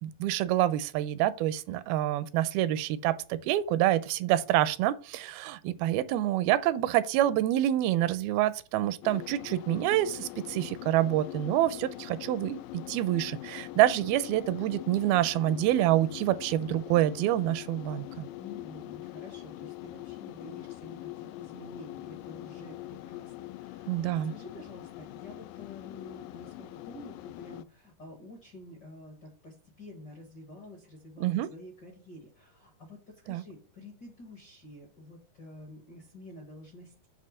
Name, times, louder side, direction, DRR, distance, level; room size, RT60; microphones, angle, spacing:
voice 1, 0.0-18.3 23.9-24.3 31.2-31.5 33.3-33.4, right 13 dB, 85° right, 2.4 m, -27 dB
sound 1, 9.0-27.6, left 16 dB, 80° left, 2.1 m, -43 dB
voice 2, 18.4-24.0 24.3-37.1, left 1 dB, 55° left, 1.2 m, -49 dB
8.8 x 3.3 x 6.4 m
omnidirectional pair, 4.2 m